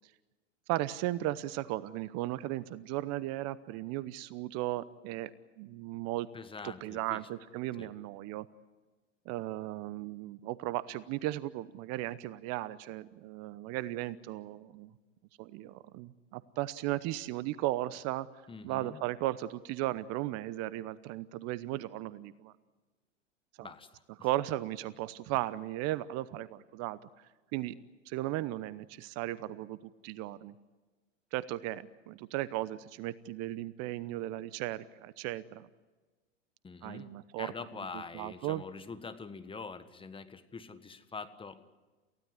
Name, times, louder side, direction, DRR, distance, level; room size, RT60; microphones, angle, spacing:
voice 1, 0.7-5.3 5.6-6.3 6.6-8.5 9.3-14.9 15.4-18.3 18.6-22.5 23.6-23.7 24.2-27.0 27.5-27.8 28.1-30.5 31.3-35.7 36.8-37.5 38.1-38.6, right 16 dB, 45° right, 17 dB, 0.9 m, -36 dB
voice 2, 6.3-7.2 7.8-7.9 18.5-19.0 23.6-24.0 36.6-37.1 37.4-41.6, left 4 dB, 15° left, 10 dB, 1.5 m, -44 dB
28.5 x 16.0 x 9.8 m, 1.3 s
hypercardioid pair, 100°, 37 cm